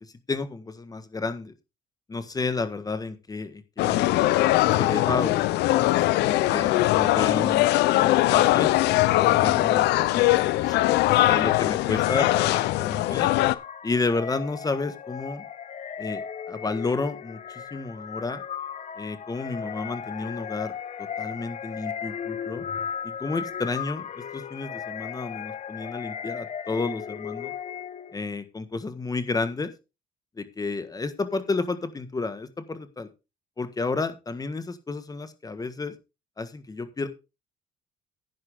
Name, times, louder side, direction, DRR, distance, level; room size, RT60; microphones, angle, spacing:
voice 1, 0.3-1.5 2.1-4.3 4.8-5.4 6.0-8.7 9.2-10.8 11.2-13.3 13.8-15.5 16.0-18.4 19.0-20.7 21.0-22.6 23.0-27.5 28.1-29.7 30.4-33.1 33.6-35.9 36.4-37.1, left 3 dB, 20° left, 10 dB, 1.6 m, -31 dB
sound 1, 3.8-13.5, left 17 dB, 85° left, 0.8 m, -21 dB
sound 2, 12.0-28.2, left 8 dB, 45° left, 1.1 m, -36 dB
10.5 x 10.5 x 3.7 m, 0.28 s
cardioid pair, 110°, 17 cm